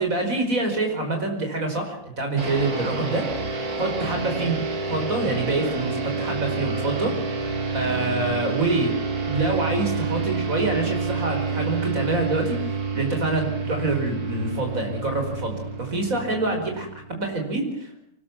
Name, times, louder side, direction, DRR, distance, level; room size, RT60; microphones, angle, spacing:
voice 1, 0.0-3.2 3.8-7.1 7.7-8.9 9.2-17.9, right 2 dB, 65° right, 4 dB, 5.6 m, -26 dB
sound 1, 2.4-17.2, right 4 dB, 85° right, 3.4 m, -29 dB
24.0 x 21.0 x 7.4 m, 0.74 s
omnidirectional pair, 1.6 m